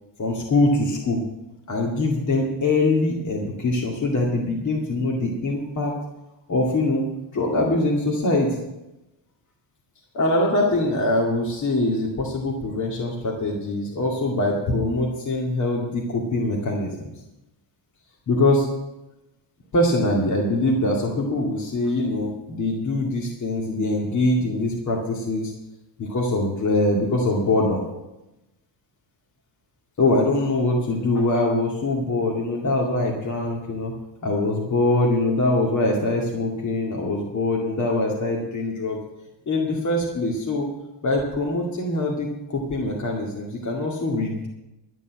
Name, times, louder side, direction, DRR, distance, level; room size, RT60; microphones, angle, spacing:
voice 1, 0.2-1.2 1.7-5.9 6.5-7.0 7.3-8.6 10.1-17.1 18.3-18.7 19.7-25.5 26.0-27.8 30.0-33.9 34.2-39.0 39.5-40.7 41.0-44.5, left 2 dB, 40° left, -1 dB, 2.3 m, -23 dB
12.5 x 7.0 x 9.4 m, 0.96 s
cardioid pair, 150°, 45 cm